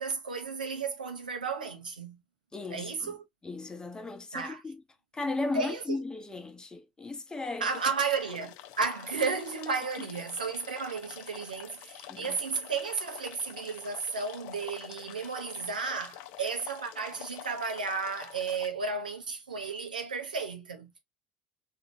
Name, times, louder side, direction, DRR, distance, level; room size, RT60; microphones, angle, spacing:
voice 1, 0.0-2.2 2.7-3.2 4.3-4.6 5.5-6.0 7.6-20.9, right 5 dB, 85° right, 0.8 m, -33 dB
voice 2, 2.5-3.2 3.4-4.8 5.1-7.7 10.0-10.1 12.1-12.4, left 3 dB, 15° left, 0.9 m, -36 dB
sound 1, 7.7-18.7, left 12 dB, 60° left, 0.5 m, -47 dB
3.6 x 2.7 x 2.6 m
figure-of-eight pair, 65°, 4 cm